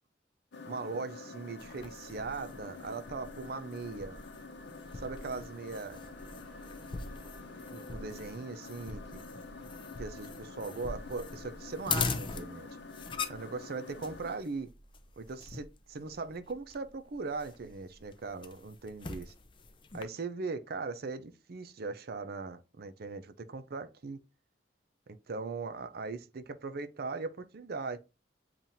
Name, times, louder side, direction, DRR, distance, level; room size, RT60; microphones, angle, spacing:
sound 1, 0.5-14.4, left 3 dB, 65° left, 0.8 m, -48 dB
voice 1, 0.6-4.2 4.9-6.0 7.7-9.0 10.0-12.7 13.3-14.7 15.2-19.3 19.9-24.2 25.3-28.0, right 4 dB, 60° right, 0.5 m, -39 dB
sound 2, 1.6-20.0, left 4 dB, 30° left, 0.4 m, -42 dB
sound 3, 6.1-12.1, right 1 dB, ahead, 3.0 m, -59 dB
7.3 x 2.5 x 2.7 m
head